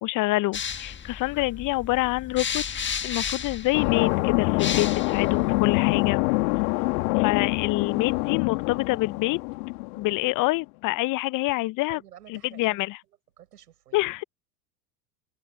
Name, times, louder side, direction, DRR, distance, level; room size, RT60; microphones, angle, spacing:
voice 1, 0.0-2.6 3.0-6.4 7.2-9.4 9.9-12.0 12.3-13.0 13.9-14.2, left 20 dB, 40° left, 0.8 m, -26 dB
sound 1, 0.5-6.1, left 7 dB, 25° left, 1.7 m, -34 dB
sound 2, 3.7-10.1, left 26 dB, 60° left, 1.9 m, -25 dB
voice 2, 11.9-12.8 13.4-14.1, right 11 dB, 75° right, 7.5 m, -49 dB
figure-of-eight pair, 75°, 47 cm